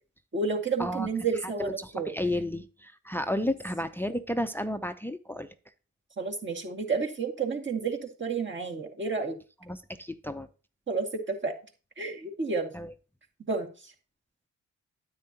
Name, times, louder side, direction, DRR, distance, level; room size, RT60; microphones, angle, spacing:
voice 1, 0.3-2.1 6.2-9.4 10.9-11.5 12.0-12.7 13.5-13.7, right 4 dB, 35° right, 1 dB, 2.2 m, -30 dB
voice 2, 1.4-5.5 9.6-10.5 12.7-12.9, left 1 dB, 5° left, 10 dB, 0.7 m, -32 dB
9.6 x 8.6 x 2.9 m, 0.34 s
supercardioid pair, 55°, 33 cm